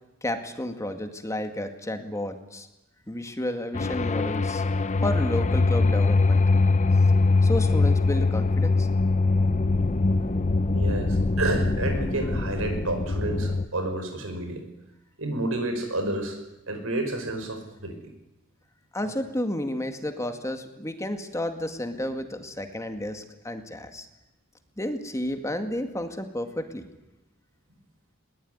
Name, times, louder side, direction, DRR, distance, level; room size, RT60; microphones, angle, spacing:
voice 1, 0.2-2.7 3.1-4.6 5.0-6.4 7.4-8.9 18.9-24.1 24.8-26.9, left 1 dB, 15° left, 6 dB, 2.1 m, -31 dB
sound 1, 3.7-13.7, left 3 dB, 35° left, 0.7 m, -22 dB
voice 2, 10.7-14.7 15.2-16.4 16.7-18.0 19.0-19.1, right 2 dB, 85° right, 7 dB, 5.4 m, -30 dB
21.0 x 19.5 x 9.6 m, 0.96 s
head